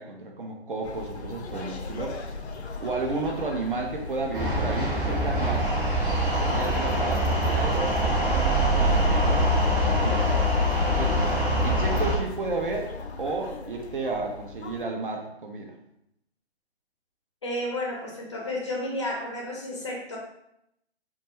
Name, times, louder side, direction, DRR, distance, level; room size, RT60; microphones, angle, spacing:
voice 1, 0.0-2.2 2.8-5.7 6.4-10.5 10.8-11.2 11.6-15.8, right 3 dB, 55° right, 1 dB, 0.4 m, -32 dB
sound 1, 0.8-14.8, left 3 dB, 85° left, 0.5 m, -39 dB
sound 2, 4.3-12.1, equal, 10° right, 0.8 m, -24 dB
voice 2, 17.4-20.2, left 1 dB, 30° left, -2 dB, 0.4 m, -32 dB
2.2 x 2.2 x 2.9 m, 0.78 s
figure-of-eight pair, 140°, 33 cm